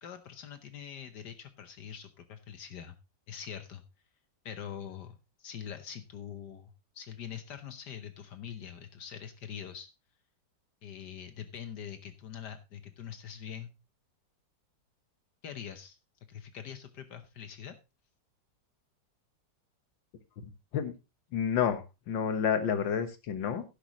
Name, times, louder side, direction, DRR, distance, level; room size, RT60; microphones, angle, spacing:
voice 1, 0.0-3.0 3.3-3.8 4.4-9.9 10.8-13.7 15.4-16.0 16.3-17.8, left 8 dB, 65° left, 9 dB, 1.5 m, -44 dB
voice 2, 20.4-20.9 21.3-23.6, left 7 dB, 90° left, 9 dB, 2.0 m, -30 dB
11.5 x 10.5 x 3.0 m, 0.27 s
omnidirectional pair, 2.0 m